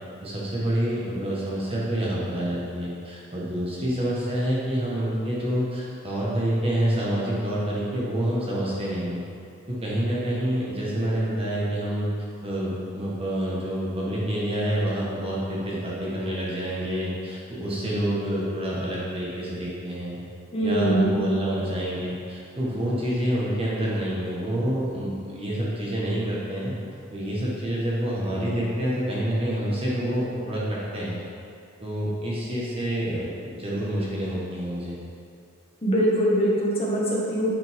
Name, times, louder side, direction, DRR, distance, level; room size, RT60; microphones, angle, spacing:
voice 1, 0.2-9.2 9.7-12.1 12.4-20.2 20.6-26.7 27.1-31.2 31.8-35.0, right 1 dB, 25° right, -7 dB, 1.4 m, -27 dB
voice 2, 20.5-21.1 35.8-37.5, right 1 dB, 30° left, -5 dB, 1.6 m, -22 dB
9.4 x 5.7 x 3.6 m, 2.4 s
head